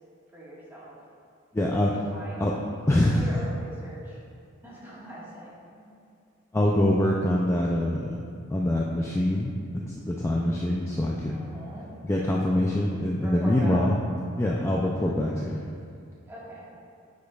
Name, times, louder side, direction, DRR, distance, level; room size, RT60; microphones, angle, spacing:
voice 1, 0.3-0.9 1.7-2.4 3.1-4.2 4.6-5.9 11.3-12.0 13.2-13.8 16.3-16.7, right 1 dB, 10° right, -8 dB, 1.6 m, -41 dB
voice 2, 1.5-1.9 2.4-2.6 2.9-3.4 6.5-8.2 8.5-11.5 12.0-14.0 14.4-15.7, left 1 dB, 15° left, -2 dB, 0.3 m, -24 dB
9.9 x 5.3 x 2.3 m, 2.4 s
head